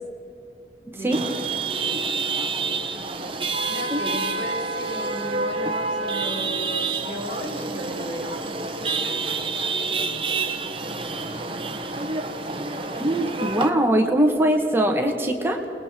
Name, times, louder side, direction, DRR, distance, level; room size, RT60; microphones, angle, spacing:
Chatter / Vehicle horn car horn honking / Traffic noise roadway noise, 1.1-13.7, right 3 dB, 30° right, 1.3 m, -28 dB
voice 1, 3.7-12.5, equal, 70° left, -2 dB, 5.2 m, -36 dB
voice 2, 13.0-15.6, right 1 dB, 15° right, 3 dB, 1.7 m, -21 dB
29.0 x 20.5 x 4.6 m, 2.7 s
head